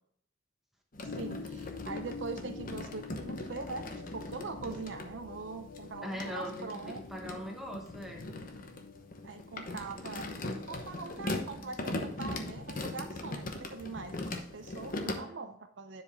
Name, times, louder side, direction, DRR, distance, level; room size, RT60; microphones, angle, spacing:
sound 1, 0.9-5.1 5.8-15.1, left 2 dB, 45° left, 1.0 m, -40 dB
sound 2, 1.0-11.6, left 4 dB, 85° left, 0.7 m, -47 dB
voice 1, 1.0-7.0 9.2-10.3 10.7-16.0, right 4 dB, 65° right, 7 dB, 0.6 m, -42 dB
voice 2, 6.0-8.3 15.1-15.4, equal, ahead, 0 dB, 1.0 m, -41 dB
10.5 x 5.0 x 3.5 m, 0.67 s
head